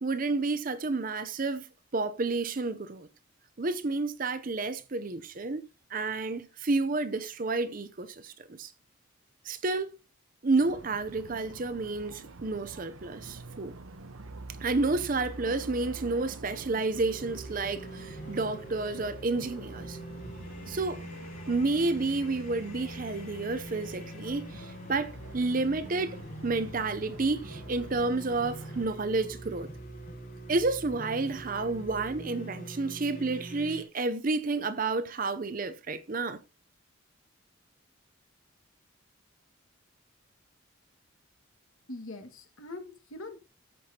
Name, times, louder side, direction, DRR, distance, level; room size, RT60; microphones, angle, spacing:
voice 1, 0.0-1.7 1.9-3.1 3.6-5.6 5.9-8.7 9.5-9.9 10.4-13.7 14.6-20.0 20.7-21.0 21.5-29.7 30.5-36.4, right 3 dB, 40° right, 0.6 m, -30 dB
sound 1, 10.6-28.9, right 3 dB, 80° right, 1.0 m, -47 dB
sound 2, 16.9-33.8, right 1 dB, 40° left, 3.8 m, -43 dB
voice 2, 41.9-43.4, left 2 dB, 75° left, 1.8 m, -42 dB
13.5 x 7.7 x 2.8 m
head